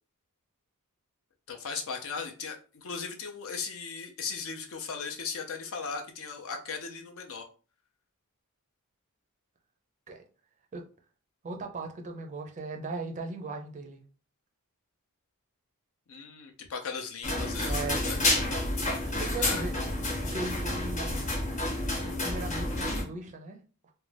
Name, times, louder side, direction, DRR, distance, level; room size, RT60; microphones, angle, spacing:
voice 1, 1.5-7.4 16.1-18.2 19.4-19.6, left 5 dB, 65° left, 4 dB, 0.6 m, -37 dB
voice 2, 11.4-14.0 17.6-18.0 19.0-19.7 20.3-21.3 22.2-23.6, right 3 dB, 35° right, 4 dB, 0.4 m, -37 dB
sound 1, 17.2-23.0, left 1 dB, 35° left, 0.9 m, -29 dB
2.5 x 2.2 x 3.2 m, 0.37 s
head